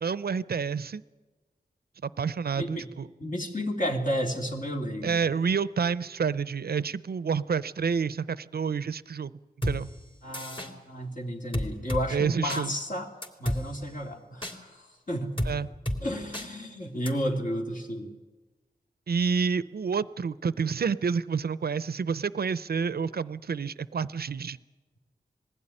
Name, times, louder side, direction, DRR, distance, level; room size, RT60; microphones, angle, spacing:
voice 1, 0.0-1.0 2.0-3.1 5.0-9.3 9.6-9.9 12.1-12.8 15.4-15.7 19.1-24.6, right 6 dB, 70° right, 17 dB, 0.6 m, -29 dB
voice 2, 2.6-2.9 3.2-5.2 10.2-13.1 13.4-15.4 16.0-18.1, equal, 55° left, 1 dB, 2.9 m, -32 dB
sound 1, 9.6-9.8 10.3-10.7 11.5-12.0 12.5-12.6 13.2-13.6 14.4-14.5 15.4-15.5 15.9-16.0 16.3-16.5 17.1-17.2, equal, 30° left, 3.0 m, -29 dB
21.0 x 15.5 x 10.0 m, 1.2 s
wide cardioid pair, 80°, 16 cm